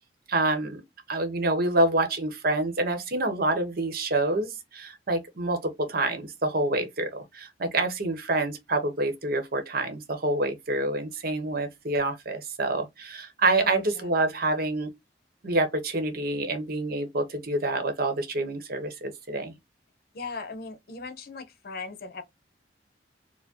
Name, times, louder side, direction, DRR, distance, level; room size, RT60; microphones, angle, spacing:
voice 1, 0.3-0.8 1.1-14.9 15.4-19.6, right 2 dB, 55° right, 0.9 m, -27 dB
voice 2, 13.6-14.1 20.1-22.2, left 4 dB, 55° left, 0.8 m, -38 dB
4.4 x 2.1 x 2.8 m
head